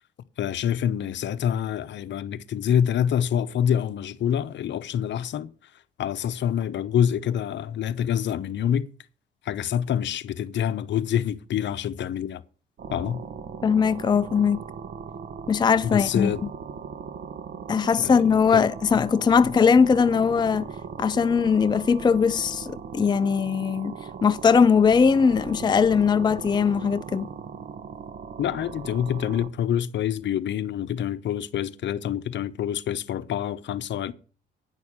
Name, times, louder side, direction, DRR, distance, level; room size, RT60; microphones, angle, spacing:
voice 1, 0.4-5.5 6.0-8.9 9.4-12.4 12.9-13.2 15.8-16.4 18.0-18.2 18.5-18.7 19.0-19.1 28.4-34.1, left 9 dB, 65° left, 0.8 m, -26 dB
sound 1, 12.8-29.5, right 6 dB, 55° right, 1.2 m, -38 dB
voice 2, 13.6-14.6 15.5-16.3 17.7-20.7 21.0-24.0 24.2-27.3, left 6 dB, 20° left, 0.4 m, -20 dB
9.7 x 6.4 x 8.6 m
cardioid pair, 90°, 20 cm